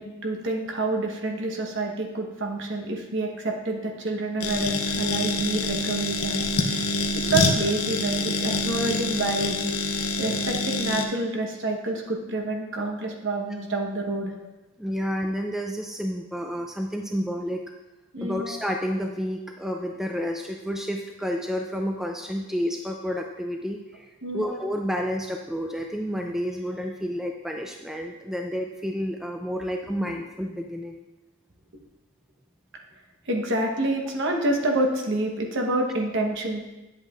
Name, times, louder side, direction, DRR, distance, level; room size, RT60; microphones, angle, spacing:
voice 1, 0.0-6.4 7.1-9.8 10.2-14.3 18.1-18.4 24.2-24.5 33.3-36.6, right 2 dB, 55° right, 2 dB, 1.0 m, -28 dB
sound 1, 4.4-11.1, left 2 dB, 70° left, 0.7 m, -26 dB
voice 2, 14.8-17.7 18.2-24.1 24.3-31.0, equal, ahead, 2 dB, 0.3 m, -30 dB
9.0 x 7.9 x 2.4 m, 1.1 s
head